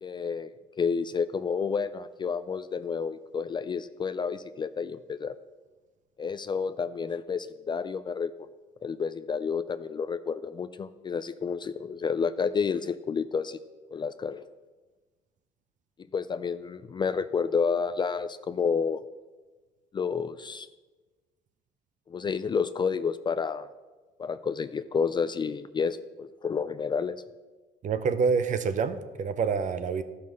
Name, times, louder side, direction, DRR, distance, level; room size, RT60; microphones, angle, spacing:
voice 1, 0.0-0.5 0.8-5.4 6.2-8.3 8.8-13.6 13.9-14.5 16.1-19.0 19.9-20.7 22.1-23.7 24.2-27.2, left 6 dB, 25° left, 13 dB, 0.3 m, -30 dB
voice 2, 27.8-30.0, right 5 dB, 45° right, 11 dB, 0.8 m, -27 dB
12.0 x 5.7 x 6.3 m, 1.3 s
cardioid pair, 110°, 17 cm